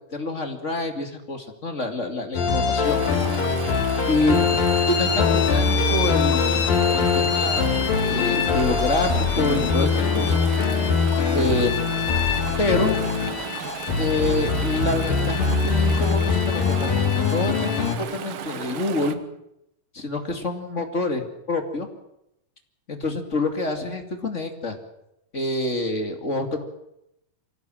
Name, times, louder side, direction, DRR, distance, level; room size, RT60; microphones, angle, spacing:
voice 1, 0.1-3.0 4.1-4.5 4.9-10.4 11.3-11.9 12.6-13.0 14.0-19.2 19.9-21.9 22.9-24.8 25.3-26.6, left 2 dB, 25° left, 5 dB, 2.1 m, -27 dB
sound 1, 2.3-18.0, left 5 dB, 65° left, 4.0 m, -22 dB
Chatter / Stream, 2.8-19.1, right 8 dB, 60° right, 1.7 m, -34 dB
25.0 x 17.5 x 7.9 m, 0.83 s
omnidirectional pair, 4.4 m